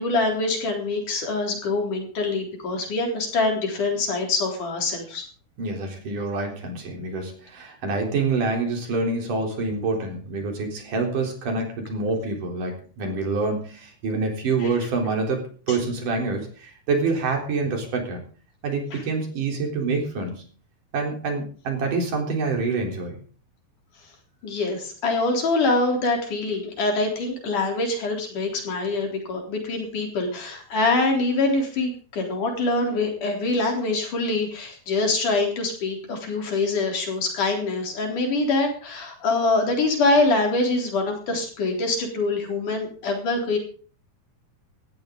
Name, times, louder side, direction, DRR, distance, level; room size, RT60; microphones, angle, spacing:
voice 1, 0.0-5.2 14.6-14.7 15.7-15.8 18.9-19.0 24.4-43.6, left 3 dB, 75° left, 2 dB, 5.3 m, -24 dB
voice 2, 5.6-18.2 18.6-20.5 20.9-23.2, right 3 dB, 80° right, 2 dB, 5.4 m, -26 dB
18.0 x 14.5 x 3.9 m, 0.42 s
omnidirectional pair, 3.7 m